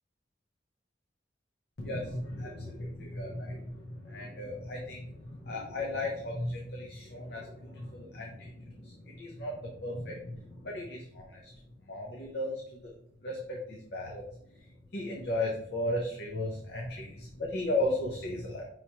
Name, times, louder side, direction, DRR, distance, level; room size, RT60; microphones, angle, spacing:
voice 1, 1.8-3.6 4.1-5.0 5.5-7.4 7.8-8.3 9.2-9.5 9.8-10.2 10.6-11.3 11.9-12.5 12.8-12.9 13.2-13.3 13.9-14.2 14.9-17.1 17.4-18.6, left 1 dB, 60° left, -1 dB, 0.7 m, -34 dB
5.6 x 3.2 x 2.8 m, 0.72 s
head